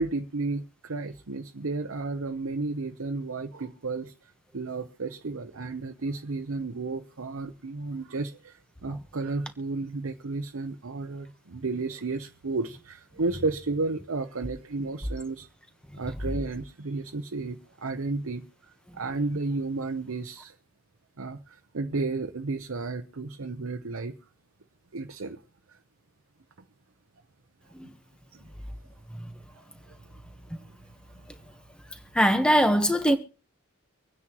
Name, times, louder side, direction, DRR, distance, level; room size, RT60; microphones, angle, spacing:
voice 1, 0.0-4.1 4.5-15.5 16.0-18.4 18.9-20.5 21.2-24.2 24.9-25.4 28.3-28.4, right 3 dB, 75° right, 0.8 m, -32 dB
voice 2, 32.1-33.2, equal, 5° left, 1.1 m, -20 dB
25.5 x 9.8 x 3.0 m
head